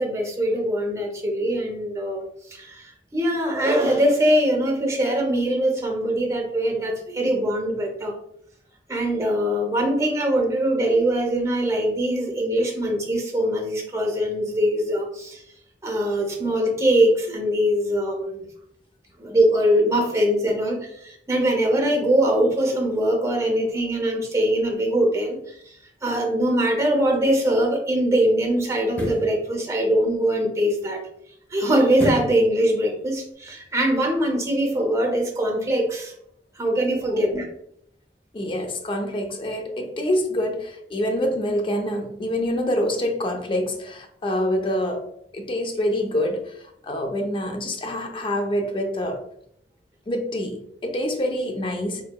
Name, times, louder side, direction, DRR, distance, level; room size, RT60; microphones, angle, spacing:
voice 1, 0.0-8.1 8.9-15.4 15.8-18.4 19.2-25.8 26.0-31.1 31.5-36.1 36.5-37.5, right 1 dB, 15° right, 1 dB, 0.6 m, -22 dB
sound 1, 27.0-27.1 28.8-29.3 32.0-32.4 32.9-33.0, equal, 10° left, 0.9 m, -28 dB
voice 2, 38.3-45.0 45.3-49.2 50.1-52.0, left 1 dB, 30° left, 4 dB, 0.5 m, -26 dB
3.8 x 2.6 x 2.2 m, 0.72 s
head